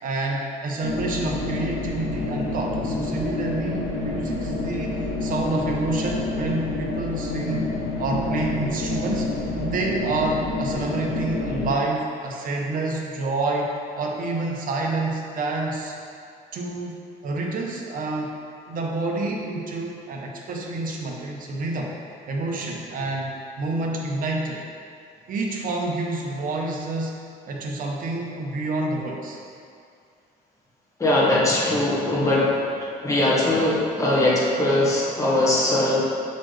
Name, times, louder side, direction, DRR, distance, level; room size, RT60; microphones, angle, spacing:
voice 1, 0.0-7.7 8.0-9.3 9.6-15.9 16.5-16.9 17.2-18.3 18.7-21.9 22.3-24.6 25.3-27.2 27.4-29.4, right 2 dB, 55° right, 0 dB, 1.0 m, -28 dB
sound 1, 0.8-11.7, left 2 dB, 75° left, 0.9 m, -28 dB
voice 2, 31.0-32.7 33.0-36.0, left 1 dB, 20° left, -6 dB, 1.5 m, -21 dB
7.4 x 4.2 x 3.3 m, 2.3 s
cardioid pair, 110°, 17 cm